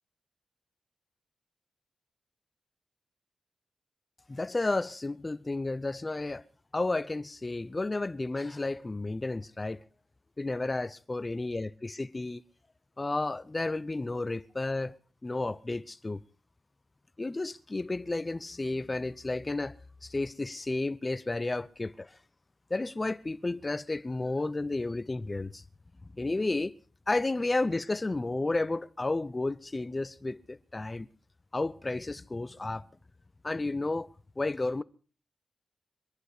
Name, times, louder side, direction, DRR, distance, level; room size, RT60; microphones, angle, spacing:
voice 1, 4.3-6.4 6.7-9.8 10.4-12.4 13.0-15.0 15.2-16.2 17.2-19.8 20.0-22.1 22.7-25.6 26.1-26.8 27.1-31.1 31.5-32.9 33.4-34.1 34.4-34.8, left 2 dB, 25° left, 0.7 m, -32 dB
24.0 x 11.0 x 4.8 m
wide cardioid pair, 95°, 0 cm